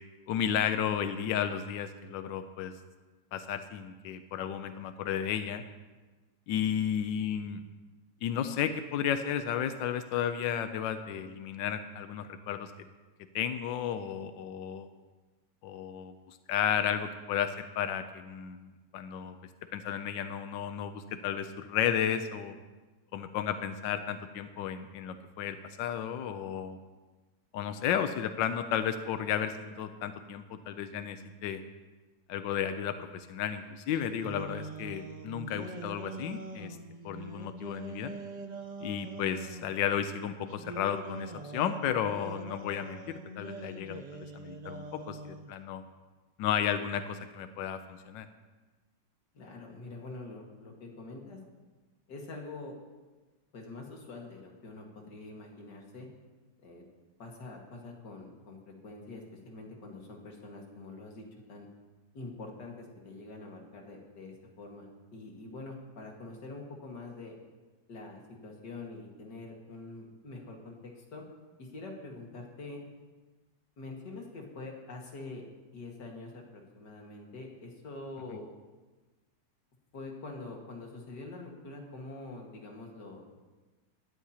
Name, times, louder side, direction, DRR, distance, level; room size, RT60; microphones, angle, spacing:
voice 1, 0.3-2.7 3.3-5.6 6.5-7.6 8.2-12.7 13.3-14.9 15.6-18.6 18.9-19.4 19.7-22.5 23.1-26.8 27.5-31.6 32.3-36.8 37.0-38.1 38.8-45.8 46.4-48.3, left 9 dB, 85° left, 9 dB, 1.4 m, -33 dB
sound 1, 33.9-39.7 40.5-45.5, right 2 dB, 50° right, 0.4 m, -43 dB
voice 2, 49.3-51.4 52.1-52.8 53.5-56.1 56.6-56.8 57.2-61.7 62.1-67.3 67.9-71.2 71.6-72.8 73.8-75.5 75.7-78.5 79.9-83.4, left 2 dB, 65° left, 0 dB, 2.5 m, -45 dB
19.0 x 13.0 x 2.9 m, 1.3 s
omnidirectional pair, 2.0 m